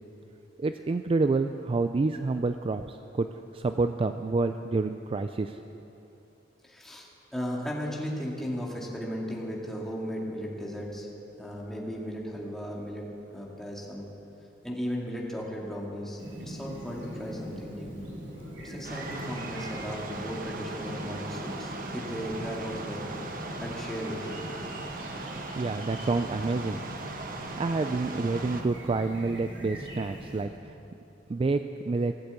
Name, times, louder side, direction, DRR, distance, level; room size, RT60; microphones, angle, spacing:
voice 1, 0.6-3.3 3.5-5.6 25.6-26.8 27.6-30.7 31.3-31.6 31.9-32.1, right 3 dB, 30° right, 8 dB, 0.3 m, -28 dB
voice 2, 6.6-11.1 11.4-13.1 13.3-14.1 14.6-18.0 18.6-23.1 23.6-24.4, equal, ahead, -4 dB, 2.1 m, -36 dB
Chirp tweet, 16.2-30.4, equal, 75° right, 3.1 m, -42 dB
sound 1, 18.8-28.6, right 3 dB, 50° right, 1.1 m, -39 dB
17.0 x 8.0 x 8.2 m, 2.9 s
head